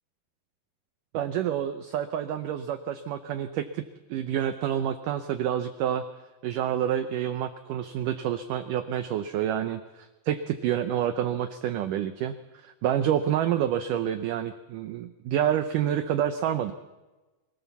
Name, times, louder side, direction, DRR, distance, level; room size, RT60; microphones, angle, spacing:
voice 1, 1.1-3.8 4.1-6.0 6.4-16.7, right 10 dB, 90° right, 10 dB, 1.8 m, -28 dB
24.5 x 16.5 x 7.2 m, 1.2 s
omnidirectional pair, 4.7 m